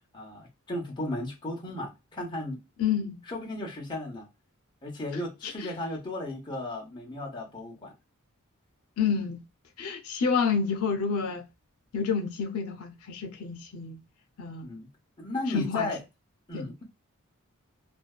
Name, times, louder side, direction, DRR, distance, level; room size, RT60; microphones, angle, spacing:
voice 1, 0.1-2.6 3.3-4.3 4.8-7.9 14.6-14.9 15.2-16.0 16.5-16.8, left 2 dB, 20° left, 0.7 m, -35 dB
voice 2, 2.8-3.2 5.4-5.7 9.0-9.4 9.8-11.4 11.9-14.0 14.4-14.7 15.5-15.9 16.5-16.7, left 6 dB, 80° left, 0.5 m, -29 dB
2.6 x 2.2 x 2.3 m
head